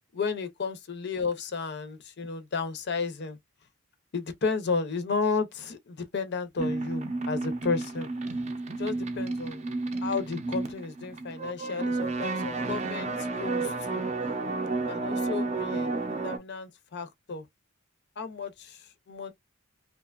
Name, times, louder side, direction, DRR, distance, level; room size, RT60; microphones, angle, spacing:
voice 1, 0.1-3.4 4.1-8.1 8.8-9.6 10.0-14.0 14.9-15.9 16.2-17.4 18.2-19.3, left 4 dB, 50° left, 0.5 m, -33 dB
sound 1, 6.6-16.4, right 3 dB, 30° right, 0.5 m, -31 dB
2.8 x 2.2 x 2.3 m
head